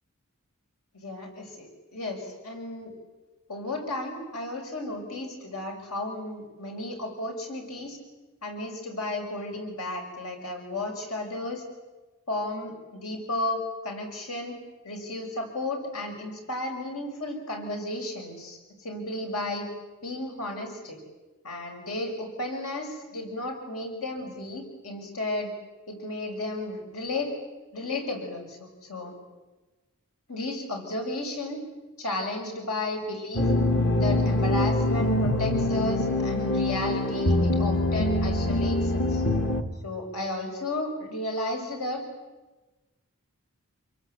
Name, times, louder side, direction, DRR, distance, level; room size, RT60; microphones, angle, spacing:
voice 1, 0.9-2.9 3.5-8.0 8.4-11.6 12.3-14.6 14.8-19.7 20.0-21.0 21.4-25.5 25.9-27.3 27.7-29.2 30.3-31.6 32.0-33.5 33.9-39.2 39.8-42.0, left 2 dB, 80° left, 2 dB, 6.8 m, -33 dB
sound 1, 33.3-39.6, left 1 dB, 55° left, 2.0 m, -24 dB
28.5 x 23.0 x 8.4 m, 1.2 s
head